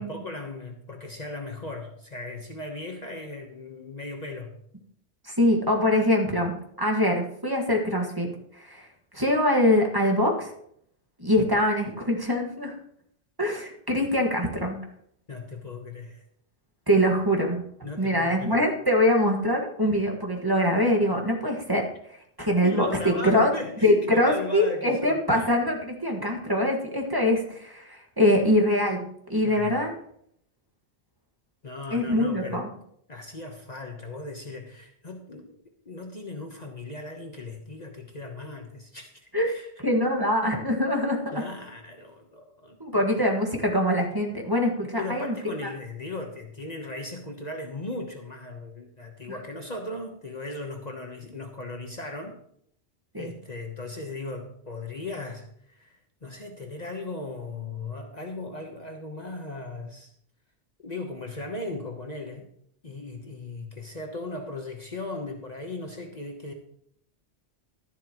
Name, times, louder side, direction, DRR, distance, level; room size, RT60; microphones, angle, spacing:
voice 1, 0.0-4.6 15.3-16.2 17.8-18.6 22.6-25.5 29.4-29.8 31.6-32.8 33.1-35.5 35.8-39.7 41.3-43.4 45.0-52.4 53.1-60.1 60.8-62.5 62.8-66.5, left 2 dB, 40° left, 3 dB, 1.2 m, -37 dB
voice 2, 5.2-8.9 9.1-10.5 11.2-12.7 13.4-14.8 16.9-17.6 18.0-23.5 23.8-29.0 29.3-29.9 31.9-32.7 39.3-39.5 39.8-41.4 42.8-45.4 45.6-45.7 49.3-49.4 53.1-53.3, left 1 dB, 20° right, 1 dB, 1.7 m, -24 dB
12.5 x 11.0 x 3.0 m, 0.68 s
omnidirectional pair, 1.1 m